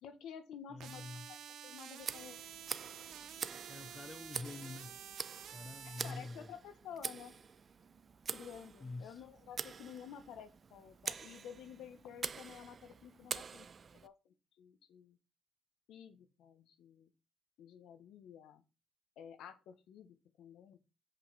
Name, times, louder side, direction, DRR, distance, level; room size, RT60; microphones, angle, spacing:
voice 1, 0.0-1.0 1.3-1.4 1.6-2.4 5.8-7.3 8.3-13.7 13.9-15.2 15.9-17.1 17.6-18.6 19.2-20.8, left 8 dB, 80° left, 1.4 m, -52 dB
voice 2, 0.7-1.3 3.7-5.0 5.5-6.5 8.8-9.2, left 3 dB, 25° left, 0.6 m, -46 dB
sound 1, 0.8-6.1, right 9 dB, 80° right, 1.4 m, -50 dB
Tick, 2.0-14.1, right 6 dB, 40° right, 0.5 m, -46 dB
7.5 x 5.6 x 5.9 m
cardioid pair, 90°, 0 cm